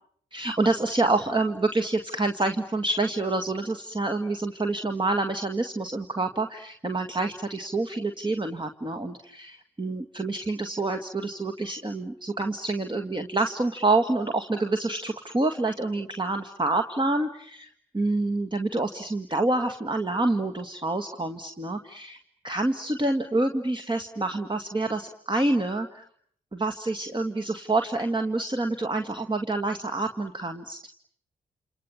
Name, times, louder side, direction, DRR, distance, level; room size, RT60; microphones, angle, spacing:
voice 1, 0.3-22.2 22.4-26.0 26.5-30.8, right 2 dB, 25° right, 6 dB, 2.0 m, -27 dB
29.0 x 28.0 x 7.3 m, 0.63 s
hypercardioid pair, 40°, 19 cm